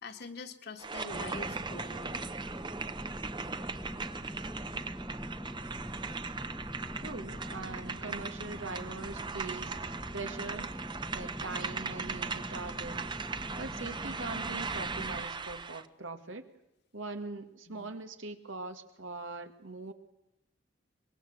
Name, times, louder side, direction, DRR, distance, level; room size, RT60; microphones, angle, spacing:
voice 1, 0.0-2.2 17.7-18.0, left 3 dB, 60° left, 5 dB, 2.0 m, -45 dB
sound 1, 0.8-15.9, right 4 dB, 25° right, 0.8 m, -39 dB
sound 2, 1.1-15.2, equal, 5° left, 1.1 m, -43 dB
voice 2, 7.0-10.8 11.1-13.1 13.6-16.5 16.9-19.9, right 3 dB, 90° right, 7 dB, 2.0 m, -42 dB
24.0 x 21.5 x 8.1 m, 0.85 s
head